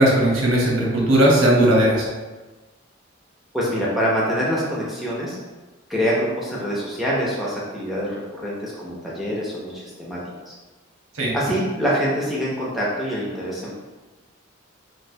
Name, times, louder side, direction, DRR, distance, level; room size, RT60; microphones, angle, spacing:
voice 1, 0.0-2.0 11.2-11.3, right 1 dB, 85° right, -3 dB, 0.9 m, -17 dB
voice 2, 3.5-5.4 5.9-10.2 10.5-10.6 11.3-13.7, equal, ahead, -7 dB, 0.5 m, -25 dB
3.2 x 2.6 x 2.6 m, 1.2 s
head